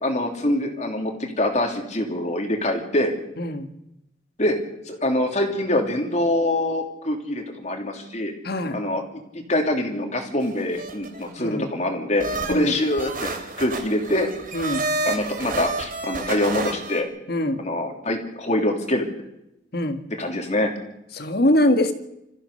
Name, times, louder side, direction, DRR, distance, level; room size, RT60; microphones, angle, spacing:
voice 1, 0.0-3.1 4.4-4.6 4.9-8.3 8.7-9.0 9.5-14.3 15.0-17.1 17.6-19.1 20.2-20.7, left 1 dB, 35° left, 3 dB, 3.0 m, -24 dB
voice 2, 8.4-8.8 11.4-11.7 12.5-12.8 14.5-14.9 17.3-17.6 19.7-20.0 21.1-21.9, left 1 dB, 55° left, 8 dB, 1.8 m, -22 dB
sound 1, 10.4-11.4 12.2-17.0, right 2 dB, 45° right, 3.3 m, -30 dB
27.5 x 14.5 x 6.7 m, 0.87 s
head